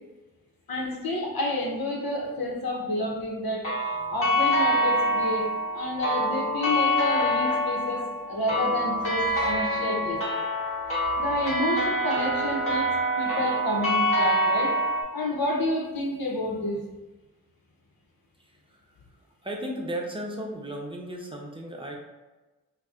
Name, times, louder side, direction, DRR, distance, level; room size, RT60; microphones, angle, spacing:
voice 1, 0.7-10.4 11.2-14.8 15.1-16.8, left 1 dB, 75° left, -1 dB, 0.9 m, -30 dB
sound 1, 3.6-15.0, equal, 40° left, 1.5 m, -26 dB
voice 2, 19.4-22.0, right 1 dB, 15° right, -1 dB, 0.7 m, -34 dB
4.6 x 2.2 x 2.5 m, 1.1 s
cardioid pair, 60°, 36 cm